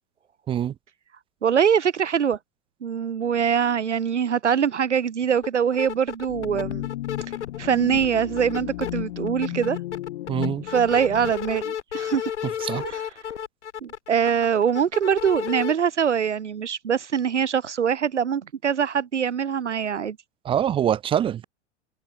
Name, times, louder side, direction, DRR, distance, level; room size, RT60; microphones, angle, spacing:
voice 1, 1.4-2.4 2.8-6.9 7.6-9.8 10.7-12.3 12.8-13.0 13.8-20.2, right 7 dB, 75° right, 1.9 m, -23 dB
sound 1, 5.4-5.5 5.7-7.6 7.9-8.9 9.3-15.7, left 9 dB, 75° left, 1.2 m, -32 dB
sound 2, 6.3-11.3, left 16 dB, 55° left, 3.9 m, -33 dB
voice 2, 10.3-10.6 12.6-12.8 20.4-21.4, right 10 dB, 15° right, 0.5 m, -24 dB
open air
figure-of-eight pair, 90°, 35 cm